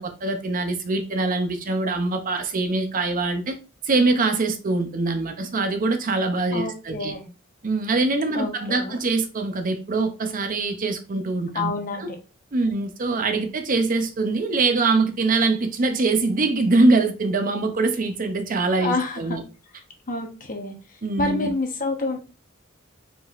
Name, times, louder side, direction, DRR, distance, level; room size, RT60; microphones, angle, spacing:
voice 1, 0.0-3.6 3.8-7.1 7.6-12.1 12.5-19.4 21.0-21.5, right 3 dB, 40° right, 0.6 m, -23 dB
voice 2, 6.5-7.3 8.3-8.9 11.5-12.1 18.8-19.4 20.1-20.7 21.2-22.2, left 3 dB, 40° left, 1.0 m, -28 dB
4.6 x 3.9 x 2.5 m
head